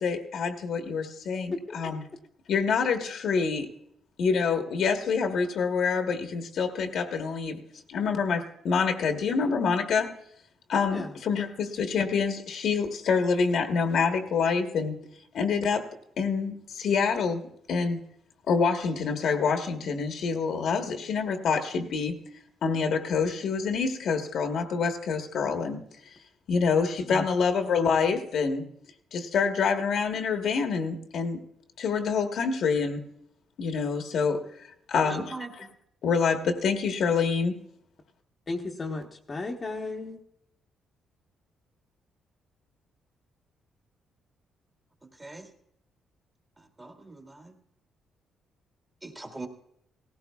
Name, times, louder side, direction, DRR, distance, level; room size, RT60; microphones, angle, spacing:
voice 1, 0.0-2.0 2.5-3.7 4.2-7.6 7.9-10.1 10.7-15.0 15.3-15.8 16.2-17.4 17.7-18.0 18.5-22.1 22.6-25.8 26.1-26.2 26.5-28.6 29.1-31.4 31.8-33.0 33.6-34.4 34.9-35.7 36.0-37.6, left 5 dB, 65° left, 5 dB, 1.2 m, -26 dB
voice 2, 35.0-35.5 45.2-45.5 46.8-47.5 49.0-49.5, right 2 dB, 15° right, 3 dB, 1.6 m, -40 dB
voice 3, 38.5-40.2, left 3 dB, 30° left, 1 dB, 1.0 m, -34 dB
18.0 x 16.0 x 2.3 m, 0.73 s
cardioid pair, 120°, 0 cm